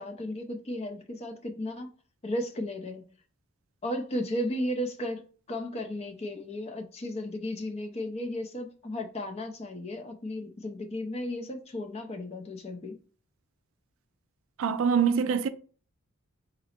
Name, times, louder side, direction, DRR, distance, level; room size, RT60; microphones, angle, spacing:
voice 1, 0.0-1.9 2.2-3.0 3.8-5.2 5.5-13.0, left 1 dB, 30° left, 0.4 m, -34 dB
voice 2, 14.6-15.5, right 6 dB, 65° right, 0.3 m, -24 dB
3.8 x 2.0 x 4.2 m
head